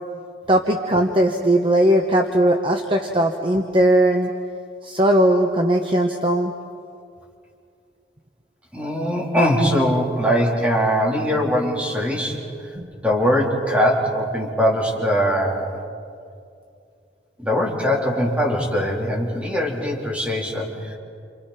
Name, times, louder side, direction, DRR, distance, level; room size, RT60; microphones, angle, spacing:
voice 1, 0.5-4.3 4.8-6.5 12.8-12.9, right 1 dB, 30° right, 3 dB, 1.1 m, -18 dB
voice 2, 8.7-12.4 13.0-15.8 17.4-21.0, equal, 5° right, -3 dB, 3.9 m, -21 dB
28.5 x 28.0 x 5.9 m, 2.4 s
head